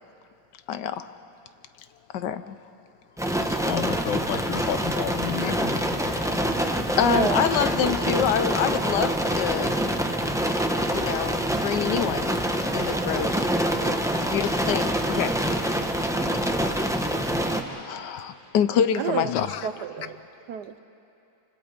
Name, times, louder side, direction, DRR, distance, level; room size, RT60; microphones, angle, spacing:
voice 1, 0.7-1.1 2.1-2.6 5.4-5.5 7.0-9.7 10.9-12.4 12.7-13.6 14.3-15.4 17.7-19.7, left 8 dB, 70° left, 12 dB, 1.2 m, -26 dB
sound 1, 3.2-17.6, right 1 dB, 5° right, 0.6 m, -26 dB
voice 2, 3.6-6.0 19.3-19.5, left 10 dB, 85° left, 11 dB, 1.6 m, -31 dB
voice 3, 7.1-7.4 19.0-19.3 19.6-20.2 20.5-20.8, right 8 dB, 65° right, 10 dB, 1.1 m, -29 dB
27.5 x 25.0 x 5.1 m, 2.7 s
omnidirectional pair, 2.1 m